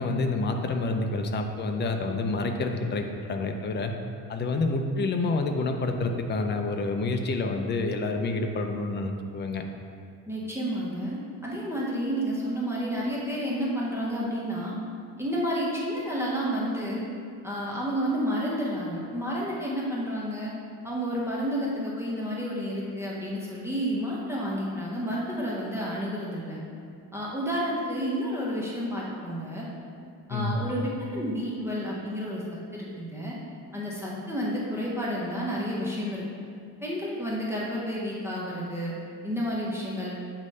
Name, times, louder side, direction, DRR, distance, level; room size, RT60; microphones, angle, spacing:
voice 1, 0.0-3.9 4.3-9.6 30.3-30.6, left 3 dB, 30° left, 4 dB, 0.5 m, -28 dB
voice 2, 10.3-14.8 15.2-17.0 17.4-20.5 20.8-26.6 27.1-29.7 30.3-33.4 33.7-36.2 36.8-38.9 39.2-40.2, equal, 5° right, -6 dB, 0.8 m, -30 dB
8.0 x 3.2 x 5.3 m, 2.3 s
cardioid pair, 155°, 36 cm